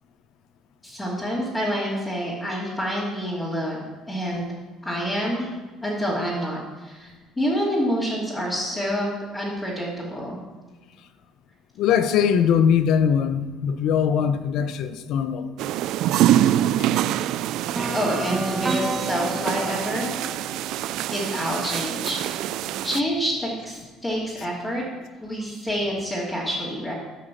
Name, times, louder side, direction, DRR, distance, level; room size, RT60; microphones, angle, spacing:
voice 1, 0.8-3.8 4.1-4.4 4.8-5.5 5.8-10.4 17.9-20.1 21.1-22.4 22.8-24.8 25.2-26.9, equal, 15° left, -7 dB, 2.8 m, -27 dB
voice 2, 11.8-15.5 16.8-16.9, left 8 dB, 65° left, 10 dB, 0.8 m, -21 dB
sound 1, 15.6-23.0, right 12 dB, 70° right, 0.3 m, -25 dB
sound 2, 17.8-21.7, right 3 dB, 20° right, 1.5 m, -30 dB
12.5 x 5.2 x 7.3 m, 1.3 s
cardioid pair, 110°, 0 cm